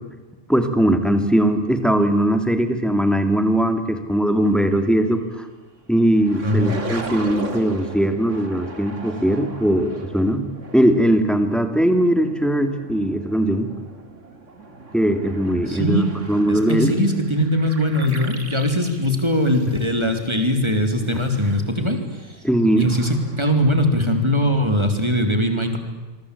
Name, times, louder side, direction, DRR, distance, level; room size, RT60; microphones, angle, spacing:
voice 1, 0.5-5.5 5.9-10.5 10.7-13.7 14.9-16.9 22.4-22.9, right 1 dB, ahead, 7 dB, 2.5 m, -20 dB
sound 1, 4.4-4.8 5.3-5.4 6.0-20.4 20.7-23.9, right 3 dB, 65° right, 2.9 m, -38 dB
voice 2, 6.4-6.7 15.7-16.1 16.5-22.4 22.8-25.8, equal, 20° right, 5 dB, 3.4 m, -21 dB
27.0 x 23.0 x 8.5 m, 1.2 s
omnidirectional pair, 1.4 m